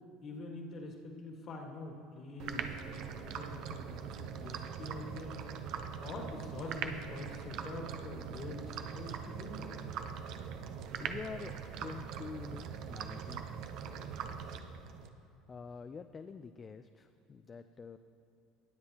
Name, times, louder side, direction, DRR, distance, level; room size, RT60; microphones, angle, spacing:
voice 1, 0.2-9.7, left 2 dB, 50° left, 1 dB, 2.0 m, -45 dB
sound 1, 2.4-15.1, right 7 dB, 60° right, 0.6 m, -42 dB
voice 2, 11.0-11.5 11.8-13.4 14.0-14.6 15.5-18.0, left 5 dB, 30° left, 9 dB, 0.4 m, -47 dB
19.5 x 7.7 x 2.9 m, 2.6 s
hypercardioid pair, 85°, 0 cm